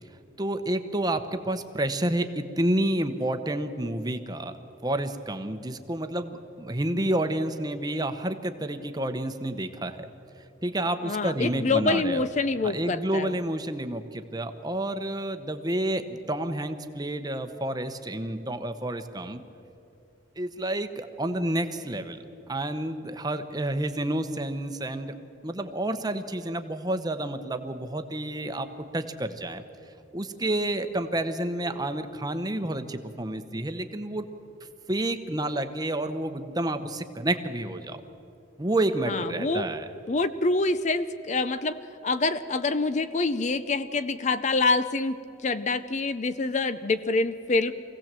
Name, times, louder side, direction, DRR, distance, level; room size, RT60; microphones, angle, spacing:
voice 1, 0.4-4.6 4.8-10.1 10.6-12.2 12.6-19.4 20.4-22.2 22.5-25.1 25.4-28.7 28.9-29.6 30.1-34.2 34.9-38.0 38.6-39.9, right 1 dB, 20° right, 8 dB, 0.9 m, -29 dB
voice 2, 11.0-13.3 39.1-39.6 40.1-47.7, left 3 dB, 35° left, 12 dB, 0.5 m, -26 dB
24.5 x 17.0 x 7.5 m, 2.7 s
head